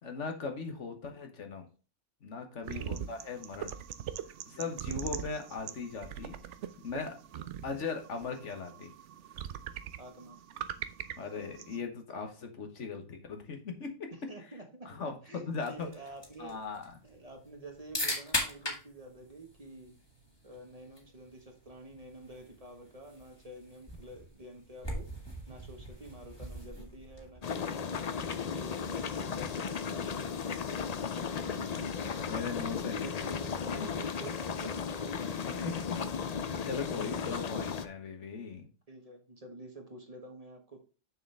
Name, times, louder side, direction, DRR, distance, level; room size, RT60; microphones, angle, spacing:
voice 1, 0.0-1.7 2.2-3.7 4.5-6.4 6.8-7.2 7.6-8.9 11.2-14.1 14.8-15.9 16.4-16.9 30.9-33.2 33.7-33.9 35.5-38.7, left 4 dB, 75° left, 5 dB, 1.6 m, -39 dB
sound 1, 2.6-11.8, right 9 dB, 75° right, 1.0 m, -42 dB
voice 2, 2.7-3.1 4.6-4.9 7.3-7.5 10.0-10.4 14.1-14.9 15.2-16.6 17.0-19.9 20.4-25.1 25.5-30.3 30.9-31.0 32.9-35.5 36.9-37.4 38.9-40.8, right 1 dB, 30° right, 3 dB, 1.4 m, -49 dB
sound 2, 15.5-27.5, left 1 dB, 20° left, 2.1 m, -41 dB
sound 3, 27.4-37.9, left 6 dB, 45° left, 0.5 m, -35 dB
6.9 x 6.6 x 3.4 m, 0.35 s
omnidirectional pair, 1.2 m